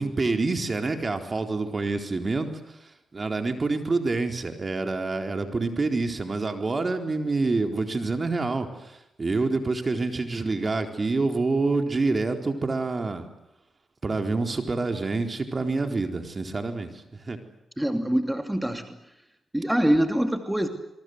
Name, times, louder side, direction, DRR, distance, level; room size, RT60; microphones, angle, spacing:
voice 1, 0.0-13.3 14.0-17.4, right 3 dB, 40° right, 5 dB, 4.1 m, -27 dB
voice 2, 17.8-19.0 19.5-20.7, right 1 dB, 10° right, 6 dB, 2.9 m, -24 dB
26.5 x 23.5 x 8.1 m, 0.89 s
supercardioid pair, 50°, 0 cm